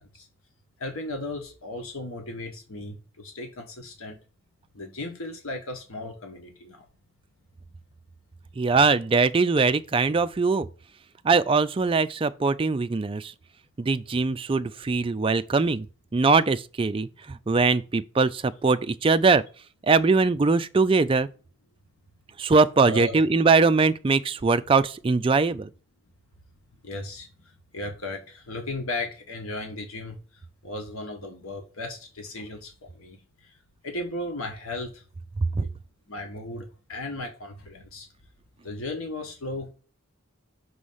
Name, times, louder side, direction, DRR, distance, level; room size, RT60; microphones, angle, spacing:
voice 1, 0.8-4.2 4.7-6.9 22.8-23.2 26.8-27.3 27.7-33.5 33.8-35.0 35.6-35.7 36.1-38.1 38.6-39.7, left 2 dB, 90° left, 1.3 m, -36 dB
voice 2, 8.6-10.7 11.2-13.3 13.8-15.9 16.1-19.4 19.9-21.3 22.4-25.7 35.4-35.6, right 4 dB, 25° right, 0.3 m, -22 dB
6.1 x 3.3 x 5.5 m
head